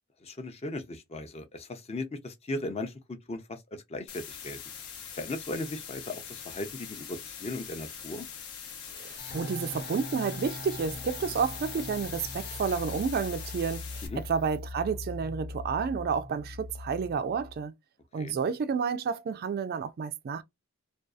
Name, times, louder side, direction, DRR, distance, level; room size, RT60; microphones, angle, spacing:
voice 1, 0.2-4.6 5.2-8.3 14.1-14.2 18.1-18.3, left 2 dB, 30° left, 0.5 m, -37 dB
sound 1, 4.1-14.1, left 7 dB, 80° left, 0.8 m, -43 dB
voice 2, 8.9-17.7 18.1-20.4, right 6 dB, 45° right, 0.3 m, -30 dB
sound 2, 9.2-17.6, left 3 dB, 45° left, 0.9 m, -41 dB
2.6 x 2.3 x 2.3 m
head